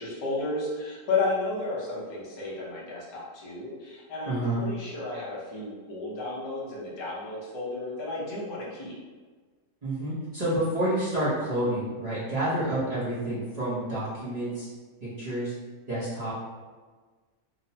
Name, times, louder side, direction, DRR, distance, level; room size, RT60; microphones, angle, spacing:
voice 1, 0.0-8.9, left 3 dB, 45° left, -6 dB, 0.3 m, -32 dB
voice 2, 4.2-4.6 9.8-14.7 15.0-15.5 15.9-16.3, right 1 dB, 45° right, -10 dB, 0.5 m, -29 dB
2.8 x 2.0 x 2.7 m, 1.4 s
omnidirectional pair, 1.5 m